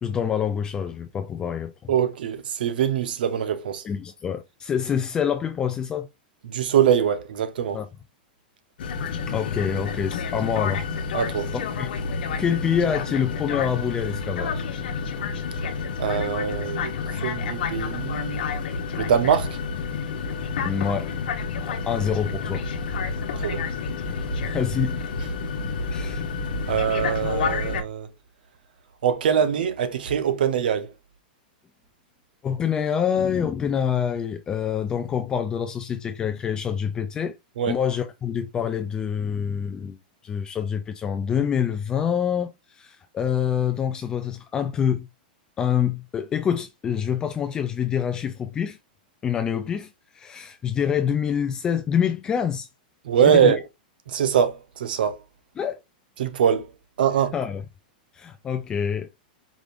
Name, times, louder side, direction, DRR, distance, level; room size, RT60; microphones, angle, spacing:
voice 1, 0.0-1.9 3.8-6.1 7.7-7.9 9.3-10.9 11.8-11.9 12.4-14.7 20.6-21.1 21.6-22.6 24.4-25.0 25.9-26.2 32.4-37.3 37.7-40.0 40.2-45.1 45.6-48.8 49.2-52.7 53.2-53.6 55.6-55.8 57.3-57.6 58.1-59.1, left 8 dB, 15° left, 0.3 m, -26 dB
voice 2, 1.9-3.8 6.4-7.8 11.1-11.5 16.0-18.5 19.0-19.6 23.4-23.7 26.7-28.1 29.0-30.9 37.6-37.8 53.0-53.6 54.1-55.2 56.2-56.7 57.0-57.3, right 8 dB, 80° right, 0.9 m, -23 dB
sound 1, 8.8-27.8, left 5 dB, 75° left, 1.0 m, -29 dB
4.9 x 2.5 x 3.4 m
supercardioid pair, 160°, 5 cm